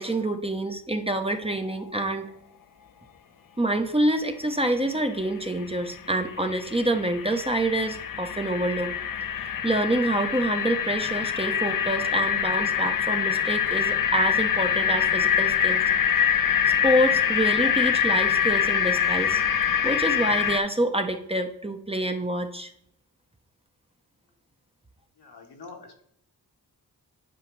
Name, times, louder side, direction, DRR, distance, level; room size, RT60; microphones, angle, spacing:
voice 1, 0.0-2.3 3.6-8.9 9.2-15.8 16.2-16.3 16.8-19.4 19.8-22.7, right 1 dB, 15° right, 5 dB, 0.8 m, -27 dB
sound 1, 5.6-5.7 5.9-20.6, left 8 dB, 55° left, 0.6 m, -25 dB
voice 2, 25.2-26.0, left 4 dB, 70° left, 1 dB, 1.6 m, -45 dB
10.5 x 4.9 x 3.2 m, 0.73 s
cardioid pair, 55°, 40 cm